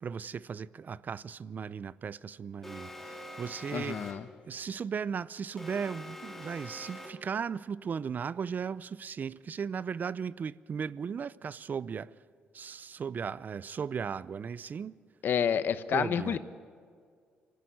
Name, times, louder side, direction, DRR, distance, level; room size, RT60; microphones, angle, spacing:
voice 1, 0.0-4.2 4.5-12.2 12.5-15.0 15.9-16.4, right 6 dB, 50° right, 0.6 m, -36 dB
Alarm, 2.6-4.4 5.6-7.4, left 1 dB, 5° left, 2.9 m, -45 dB
voice 2, 3.7-4.2 15.2-16.4, left 8 dB, 65° left, 1.0 m, -29 dB
25.0 x 15.0 x 9.5 m
supercardioid pair, 70°, 4 cm